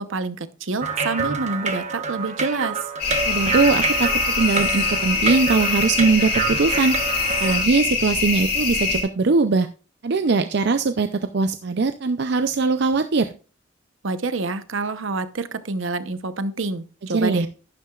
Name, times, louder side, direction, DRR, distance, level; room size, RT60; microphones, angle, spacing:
voice 1, 0.0-2.8 14.0-17.5, right 3 dB, 75° right, 11 dB, 0.9 m, -27 dB
sound 1, 0.8-7.6, right 5 dB, 35° right, 1.0 m, -27 dB
sound 2, 3.0-9.0, left 4 dB, 55° left, 4.7 m, -24 dB
voice 2, 3.3-4.1 4.4-7.0 7.4-9.7 10.0-13.3 17.1-17.5, right 4 dB, 55° right, 9 dB, 0.5 m, -21 dB
11.5 x 10.5 x 2.4 m, 0.36 s
head